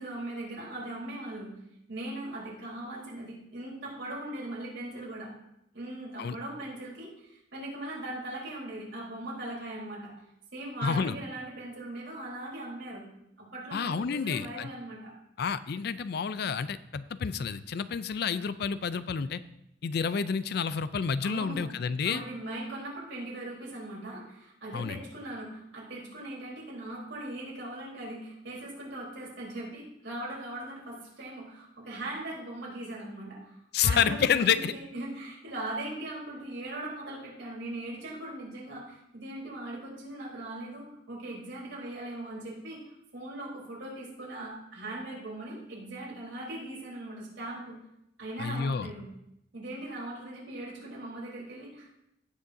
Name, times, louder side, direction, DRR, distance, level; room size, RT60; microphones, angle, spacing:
voice 1, 0.0-1.5 1.9-5.3 5.7-10.1 10.5-13.0 13.4-15.1 21.2-21.6 22.0-47.8 48.2-49.0 49.5-52.0, right 1 dB, 80° right, -4 dB, 3.8 m, -40 dB
voice 2, 10.8-11.2 13.7-14.7 15.4-19.4 19.8-22.2 24.7-25.0 33.7-34.7 48.4-48.9, left 6 dB, 60° left, 14 dB, 0.4 m, -29 dB
16.5 x 6.4 x 2.7 m, 0.80 s
head